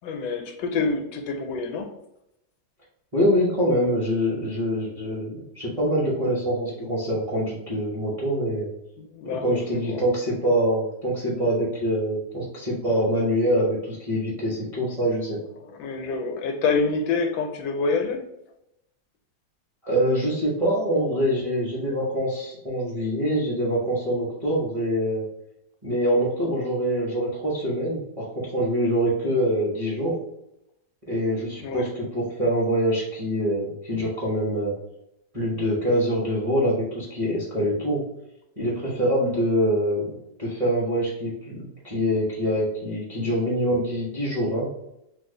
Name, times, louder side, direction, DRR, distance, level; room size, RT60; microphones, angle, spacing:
voice 1, 0.0-1.9 9.0-10.0 15.8-18.2 31.6-31.8, left 4 dB, 80° left, 5 dB, 1.2 m, -27 dB
voice 2, 3.1-8.7 9.2-15.4 19.8-25.2 25.8-30.2 31.1-34.7 35.3-38.0 38.6-44.7, equal, 35° right, -6 dB, 0.5 m, -25 dB
2.9 x 2.3 x 3.7 m, 0.83 s
omnidirectional pair, 1.8 m